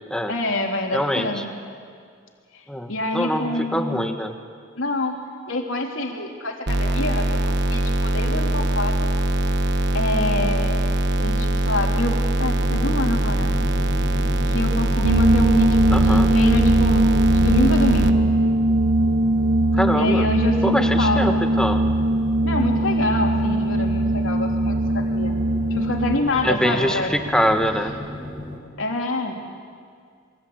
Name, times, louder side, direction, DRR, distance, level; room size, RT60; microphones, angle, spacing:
voice 1, 0.3-1.5 2.5-4.2 4.7-5.2 5.5-9.1 9.9-10.8 11.2-13.6 14.5-18.3 19.9-21.4 22.4-25.3 25.7-27.1 28.8-29.4, left 2 dB, 80° left, 1 dB, 3.4 m, -26 dB
voice 2, 0.9-1.4 2.7-4.3 15.9-16.3 19.7-20.3 20.6-21.9 26.4-28.0, equal, 5° left, 5 dB, 1.7 m, -24 dB
sound 1, 6.7-18.1, right 1 dB, 60° right, 1.3 m, -22 dB
sound 2, 12.6-28.6, left 2 dB, 25° right, 5.5 m, -35 dB
sound 3, 15.0-26.2, right 1 dB, 80° right, 1.3 m, -20 dB
28.0 x 23.0 x 8.8 m, 2.1 s
head